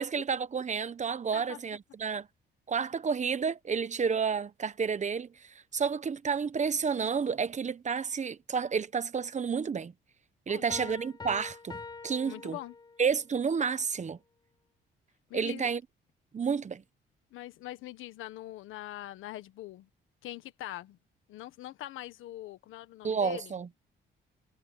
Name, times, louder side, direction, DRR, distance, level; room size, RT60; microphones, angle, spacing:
voice 1, 0.0-2.3 2.7-5.3 5.7-9.9 10.5-12.6 13.0-14.2 15.3-15.8 16.3-16.8 23.0-23.7, right 6 dB, 35° right, 1.1 m, -30 dB
voice 2, 10.5-10.9 12.2-12.7 15.3-15.7 17.3-19.9 20.2-21.0 21.3-23.6, left 14 dB, 90° left, 1.5 m, -43 dB
Piano, 10.7-13.2, left 4 dB, 20° left, 0.9 m, -44 dB
cardioid pair, 90°, 20 cm